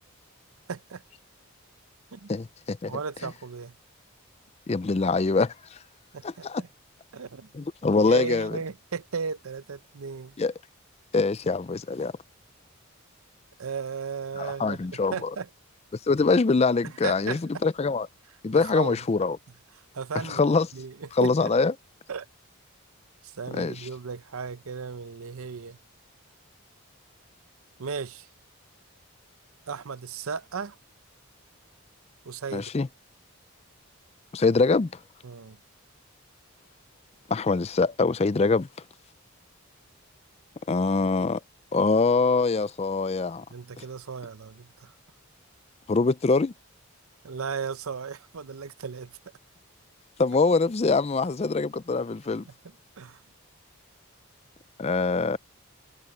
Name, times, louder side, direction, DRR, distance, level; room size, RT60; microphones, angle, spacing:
voice 1, 0.7-1.0 2.1-2.3 2.9-3.7 6.1-6.7 7.1-7.5 8.0-10.4 13.6-14.8 15.1-15.5 16.8-17.4 18.5-19.0 19.9-20.4 20.7-21.5 22.1-22.3 23.2-25.8 27.8-28.3 29.7-30.8 32.2-32.7 35.2-35.6 43.5-44.9 47.2-49.2 52.4-52.5 53.0-53.2, right 5 dB, 75° right, 0.6 m, -35 dB
voice 2, 2.3-2.9 4.7-5.8 6.2-6.6 7.5-8.6 10.4-10.5 11.1-12.1 14.4-15.3 16.1-18.1 18.4-19.4 20.3-20.7 21.2-21.7 23.5-23.9 32.5-32.9 34.3-34.9 37.3-38.7 40.7-41.4 41.7-43.4 45.9-46.5 50.2-52.4 54.8-55.4, left 4 dB, 30° left, 0.4 m, -24 dB
head